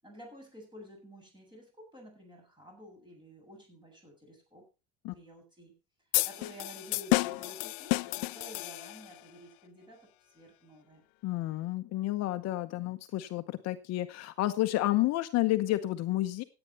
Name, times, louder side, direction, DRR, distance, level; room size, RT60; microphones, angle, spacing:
voice 1, 0.0-4.6 5.1-5.7 6.2-11.0, equal, 15° right, 1 dB, 7.6 m, -51 dB
sound 1, 6.1-9.2, left 27 dB, 80° left, 0.5 m, -31 dB
voice 2, 11.2-16.4, left 16 dB, 50° left, 9 dB, 1.0 m, -30 dB
15.5 x 9.1 x 4.3 m, 0.30 s
supercardioid pair, 125°, 33 cm